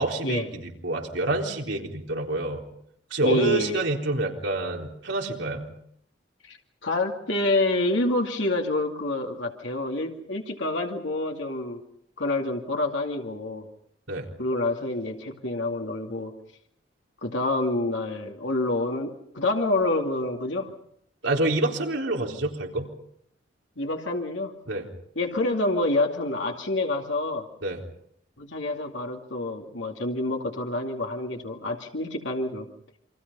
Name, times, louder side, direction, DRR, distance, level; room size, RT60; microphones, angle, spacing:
voice 1, 0.0-2.6 3.1-5.7 14.1-14.3 21.2-22.9 24.7-24.9 27.6-27.8, right 2 dB, 85° right, 1 dB, 3.9 m, -27 dB
voice 2, 3.2-3.8 6.4-6.6 6.8-11.8 12.2-13.7 14.4-16.3 17.2-20.7 23.8-24.5 25.2-27.4 28.4-32.7, left 2 dB, 85° left, 1 dB, 2.5 m, -27 dB
28.0 x 24.5 x 5.5 m, 0.68 s
head